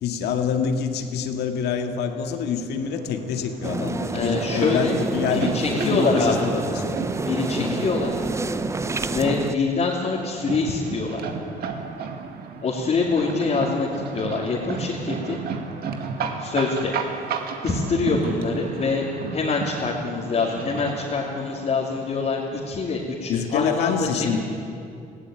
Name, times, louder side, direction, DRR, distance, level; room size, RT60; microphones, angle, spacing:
voice 1, 0.0-7.0 7.6-7.9 23.3-24.4, left 6 dB, 80° left, 6 dB, 2.0 m, -26 dB
sound 1, 2.8-22.7, right 6 dB, 65° right, 2.1 m, -34 dB
sound 2, 3.6-9.6, right 3 dB, 15° right, 0.7 m, -28 dB
voice 2, 4.1-5.0 5.3-6.5 7.2-8.1 9.1-11.2 12.6-13.9 14.1-15.4 16.2-16.9 17.6-19.0 19.3-24.3, left 4 dB, 40° left, -4 dB, 2.9 m, -25 dB
18.5 x 16.0 x 8.9 m, 2.5 s
cardioid pair, 110°, 17 cm